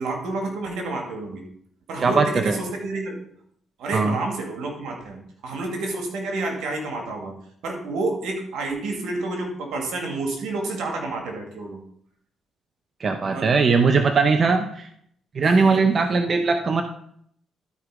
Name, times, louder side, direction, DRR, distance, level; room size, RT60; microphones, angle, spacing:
voice 1, 0.0-1.4 1.9-3.2 3.8-7.4 7.6-11.8 13.3-13.5 15.7-15.8, right 2 dB, 80° right, 2 dB, 2.4 m, -29 dB
voice 2, 2.0-2.6 3.9-4.1 13.0-14.9 15.3-16.8, right 4 dB, 45° right, 6 dB, 0.8 m, -20 dB
12.5 x 4.7 x 5.0 m, 0.67 s
cardioid pair, 90°, 0 cm